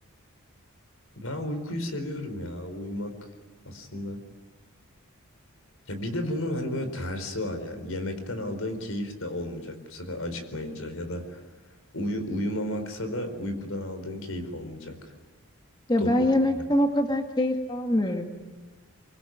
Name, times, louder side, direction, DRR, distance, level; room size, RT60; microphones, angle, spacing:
voice 1, 1.2-3.2 3.6-4.2 5.9-11.4 11.9-15.1 16.0-16.1 16.6-16.7, left 1 dB, 75° left, 8 dB, 4.6 m, -33 dB
voice 2, 15.9-18.3, left 1 dB, 20° left, 4 dB, 1.9 m, -24 dB
24.0 x 24.0 x 9.4 m, 1.2 s
head